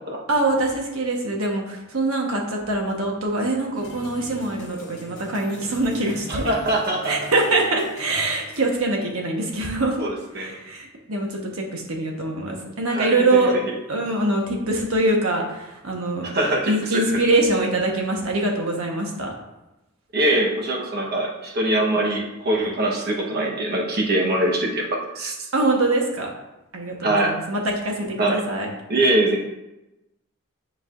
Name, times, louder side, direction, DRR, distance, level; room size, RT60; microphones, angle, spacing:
voice 1, 0.3-6.5 7.0-10.0 10.4-13.6 13.9-16.3 16.7-19.3 25.5-26.3 26.7-28.7, right 2 dB, 80° right, 1 dB, 1.2 m, -23 dB
sound 1, 3.7-8.8, left 1 dB, 60° left, 1.3 m, -41 dB
voice 2, 6.3-7.1 10.0-10.6 12.9-13.2 16.2-17.2 20.1-24.9 25.1-25.3 27.0-27.4 28.2-28.4 28.9-29.4, right 1 dB, 50° right, -1 dB, 1.2 m, -23 dB
9.4 x 4.8 x 2.6 m, 0.96 s
head